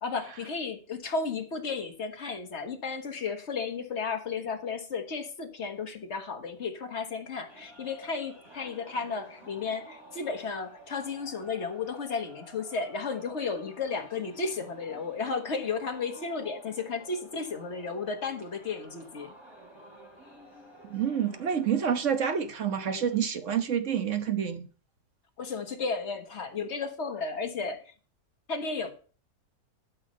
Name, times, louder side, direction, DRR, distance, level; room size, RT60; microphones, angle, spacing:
voice 1, 0.0-19.3 25.4-27.9 28.5-28.9, left 4 dB, 50° left, 1.6 m, -33 dB
sound 1, 7.5-23.2, right 1 dB, 15° right, 3.7 m, -52 dB
voice 2, 20.9-24.7, right 8 dB, 55° right, 1.4 m, -28 dB
12.0 x 5.7 x 5.5 m
omnidirectional pair, 1.6 m